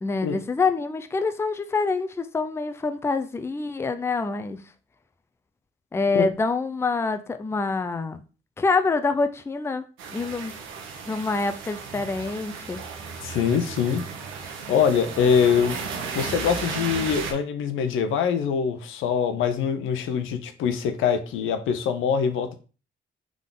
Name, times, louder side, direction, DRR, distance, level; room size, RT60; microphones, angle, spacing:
voice 1, 0.0-4.6 5.9-8.2 8.6-9.8 10.1-10.5 11.1-12.8, left 4 dB, 15° left, 0.4 m, -26 dB
sound 1, 10.0-17.3, right 5 dB, 90° right, 0.9 m, -34 dB
voice 2, 13.2-14.1 14.7-15.8 16.1-22.6, left 7 dB, 85° left, 0.7 m, -23 dB
3.6 x 3.6 x 3.8 m
cardioid pair, 90°, 20 cm